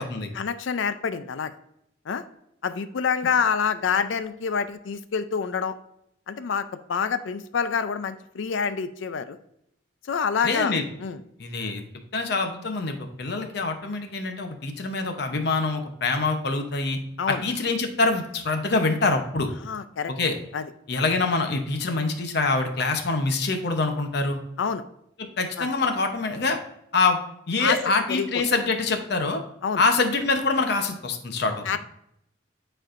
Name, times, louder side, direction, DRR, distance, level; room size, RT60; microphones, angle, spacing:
voice 1, 0.3-1.5 2.1-2.2 2.6-5.8 6.3-9.4 10.1-10.7 11.0-11.2 17.2-17.4 19.6-20.1 20.5-20.6 24.6-24.8 25.6-25.7 27.6-27.8 28.1-28.3 29.6-29.8 31.7-31.8, left 6 dB, 75° left, 11 dB, 0.4 m, -27 dB
voice 2, 10.4-10.8 11.4-11.8 12.1-17.0 17.3-19.5 20.1-20.4 20.9-24.4 25.2-26.6 26.9-27.2 27.5-29.4 29.8-31.6, left 3 dB, 55° left, 6 dB, 0.8 m, -25 dB
8.9 x 4.3 x 2.5 m, 0.76 s
head